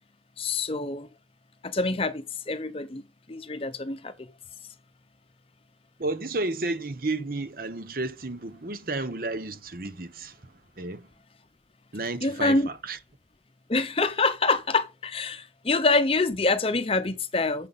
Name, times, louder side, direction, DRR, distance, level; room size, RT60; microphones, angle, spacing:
voice 1, 0.4-1.1 1.6-3.0 3.3-4.1 12.2-12.7 13.7-17.7, left 3 dB, 30° left, 0.7 m, -26 dB
voice 2, 6.0-11.1 11.9-13.0, right 2 dB, 50° right, 1.0 m, -32 dB
9.1 x 7.6 x 4.1 m
head